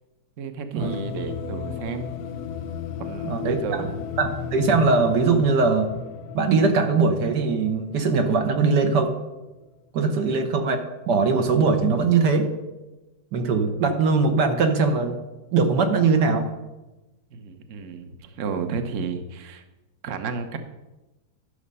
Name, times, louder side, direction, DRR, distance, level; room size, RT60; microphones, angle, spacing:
voice 1, 0.4-2.2 3.0-4.0 10.1-10.4 17.3-19.6 20.0-20.6, right 5 dB, 50° right, 7 dB, 1.1 m, -32 dB
sound 1, 0.8-9.0, left 7 dB, 70° left, 1.1 m, -35 dB
voice 2, 3.2-3.6 4.2-5.9 6.3-9.2 9.9-10.8 11.1-12.5 13.3-15.2 15.5-16.5, right 4 dB, 70° right, 5 dB, 1.5 m, -21 dB
11.5 x 6.4 x 5.4 m, 1.1 s
omnidirectional pair, 1.9 m